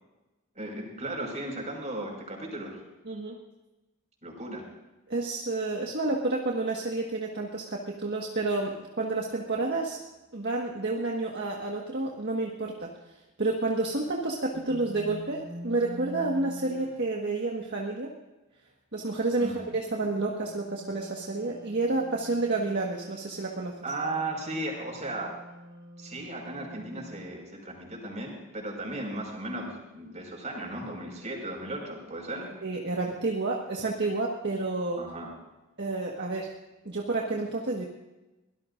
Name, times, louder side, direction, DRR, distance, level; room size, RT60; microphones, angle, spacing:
voice 1, 0.5-2.8 4.2-4.6 19.4-19.6 23.8-25.4 26.0-32.5 35.0-35.3, right 2 dB, 35° right, 0 dB, 5.3 m, -36 dB
voice 2, 3.1-3.4 5.1-10.0 10.3-12.9 13.4-18.1 18.9-23.7 32.6-35.0 35.8-36.5 36.8-37.8, right 2 dB, 55° right, -1 dB, 1.6 m, -30 dB
sound 1, 14.5-17.0 19.3-27.3, right 1 dB, 70° right, 4.1 m, -46 dB
24.0 x 18.0 x 2.6 m, 1.0 s
head